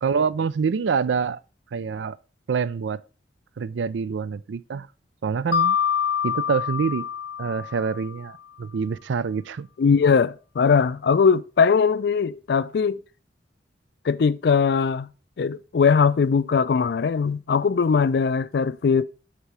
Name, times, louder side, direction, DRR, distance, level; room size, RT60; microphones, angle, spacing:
voice 1, 0.0-1.4 1.7-2.2 2.5-3.0 3.6-4.9 5.2-5.8 6.2-7.1 7.4-9.7, right 5 dB, 85° right, 0.4 m, -26 dB
Mallet percussion, 5.5-8.3, left 8 dB, 85° left, 0.7 m, -26 dB
voice 2, 9.8-13.0 14.0-15.1 15.4-19.0, left 5 dB, 60° left, 0.4 m, -20 dB
8.2 x 3.8 x 4.8 m
head